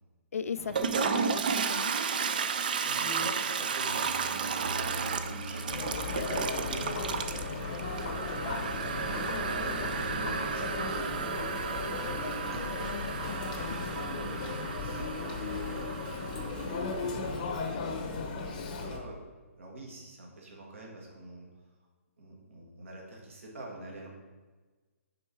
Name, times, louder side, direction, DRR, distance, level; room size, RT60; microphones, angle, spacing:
voice 1, 0.3-2.0 12.8-13.8, left 6 dB, 80° left, 14 dB, 0.3 m, -37 dB
Toilet flush, 0.6-17.3, right 6 dB, 35° right, 0.3 m, -33 dB
voice 2, 2.5-5.7 6.1-7.3 7.6-13.1 13.7-19.2 19.6-21.5 22.2-24.1, right 2 dB, 60° right, -2 dB, 2.0 m, -46 dB
sound 1, 3.9-13.0, right 1 dB, 85° right, 1.3 m, -44 dB
Chatter, 5.7-19.0, left 4 dB, 25° left, 0.7 m, -36 dB
6.3 x 4.3 x 4.6 m, 1.3 s
hypercardioid pair, 175°, 8 cm